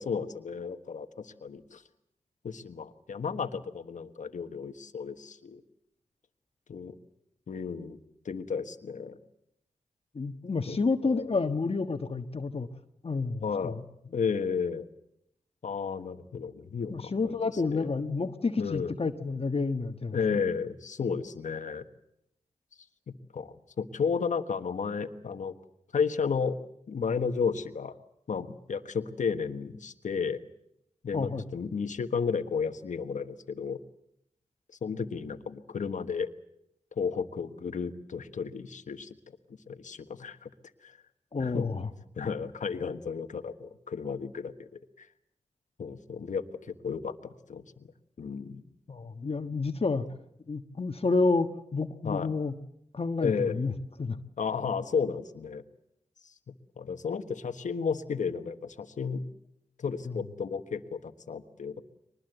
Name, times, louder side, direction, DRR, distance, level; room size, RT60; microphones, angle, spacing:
voice 1, 0.0-1.8 2.4-5.6 6.7-6.9 7.5-8.0 8.2-9.2 10.7-10.8 11.0-11.3 13.4-13.8 14.1-14.9 15.6-17.9 18.6-18.9 20.1-21.8 23.1-25.5 25.9-26.5 26.9-27.9 28.3-30.4 31.0-33.8 34.8-36.3 37.0-39.1 39.7-40.5 40.8-41.0 41.4-41.7 42.2-44.7 45.0-45.1 45.8-47.9 48.2-48.6 52.0-52.3 53.2-53.6 54.4-55.6 56.8-59.2 59.8-61.8, left 6 dB, 75° left, 8 dB, 1.4 m, -33 dB
voice 2, 10.1-12.7 13.0-13.8 16.9-20.2 31.1-31.4 41.3-41.9 48.9-50.0 50.5-52.5 52.9-53.7 54.0-54.2 60.0-60.2, left 4 dB, 50° left, 7 dB, 1.4 m, -29 dB
23.5 x 20.5 x 8.0 m, 0.78 s
cardioid pair, 45°, 13 cm